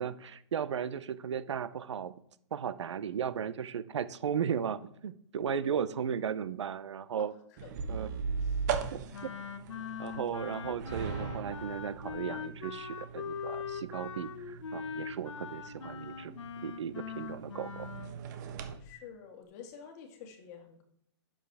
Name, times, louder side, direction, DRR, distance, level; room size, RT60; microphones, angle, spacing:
voice 1, 0.0-2.1 2.5-7.3 7.9-8.1 8.9-9.3 10.0-16.3 16.6-17.9, right 8 dB, 80° right, 15 dB, 0.7 m, -36 dB
voice 2, 7.2-8.1 8.4-8.7 18.8-20.8, left 7 dB, 35° left, 4 dB, 2.1 m, -50 dB
sound 1, 7.6-18.7, right 6 dB, 40° right, 1.2 m, -40 dB
Wind instrument woodwind instrument, 9.1-18.1, left 7 dB, 85° left, 1.1 m, -41 dB
11.0 x 7.3 x 3.5 m, 0.71 s
hypercardioid pair, 155°, 15 cm